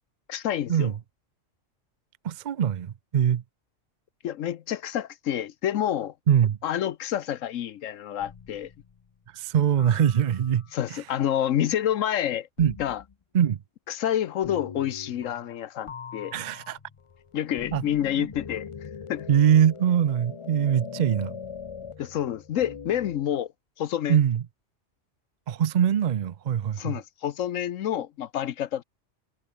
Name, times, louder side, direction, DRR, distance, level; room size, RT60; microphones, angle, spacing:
voice 1, 0.3-0.9 4.2-6.1 6.6-8.7 10.7-12.5 12.8-13.0 13.9-16.3 17.3-18.7 19.1-19.3 22.0-23.5 23.8-24.2 26.8-28.8, left 10 dB, 80° left, 1.1 m, -28 dB
voice 2, 2.2-3.4 6.3-6.6 9.3-10.6 10.9-11.0 12.6-12.7 13.3-13.6 16.3-16.8 17.7-17.8 18.2-18.3 19.3-21.3 24.1-24.4 25.5-26.9, right 9 dB, 55° right, 0.5 m, -22 dB
sound 1, 8.2-9.0 9.8-10.9 12.6-13.1 14.4-15.6 15.9-23.3, left 6 dB, 45° left, 0.4 m, -41 dB
omnidirectional pair, 1.3 m